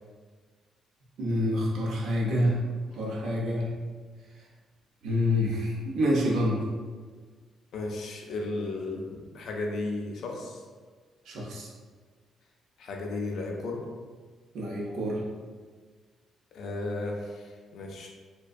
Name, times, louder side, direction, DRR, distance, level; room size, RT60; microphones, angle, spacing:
voice 1, 1.2-2.6 2.9-3.7 5.0-6.6 11.3-11.7 14.5-15.2, left 1 dB, 75° right, -3 dB, 0.6 m, -27 dB
voice 2, 7.7-10.6 12.8-13.8 16.5-18.1, left 2 dB, 70° left, 0 dB, 0.4 m, -34 dB
2.5 x 2.2 x 2.3 m, 1.5 s
cardioid pair, 90°, 0 cm